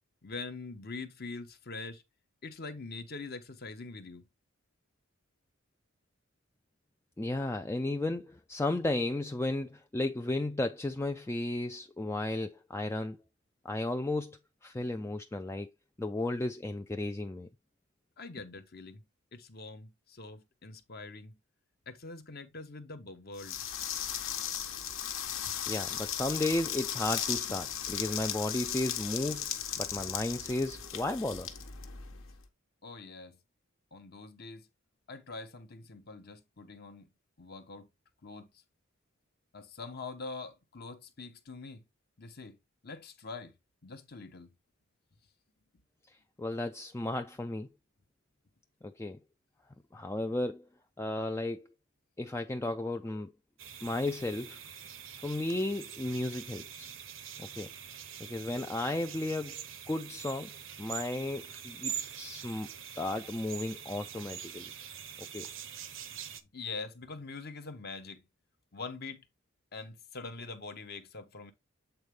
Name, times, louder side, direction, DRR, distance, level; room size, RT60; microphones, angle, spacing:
voice 1, 0.2-2.0 2.4-4.2 18.2-19.0 19.3-21.4 21.9-23.6 25.4-25.6 27.5-27.6 32.8-33.4 33.9-34.7 35.1-37.1 37.4-37.9 38.2-38.6 39.5-41.9 42.2-42.6 42.8-43.5 43.8-44.5 66.3-68.2 68.7-69.3 69.7-71.5, left 3 dB, 50° left, 0.9 m, -44 dB
voice 2, 7.2-13.2 13.6-15.7 16.0-17.5 25.7-31.5 46.0-47.7 48.8-49.2 49.9-50.6 51.0-51.7 52.2-53.3 53.8-54.6 55.2-56.9 57.4-57.7 58.2-64.7 65.2-65.5, left 2 dB, 10° left, 0.3 m, -34 dB
sound 1, 23.4-32.4, left 9 dB, 70° left, 1.1 m, -36 dB
sound 2, 53.6-66.4, right 8 dB, 65° right, 0.8 m, -44 dB
8.0 x 4.1 x 3.5 m
head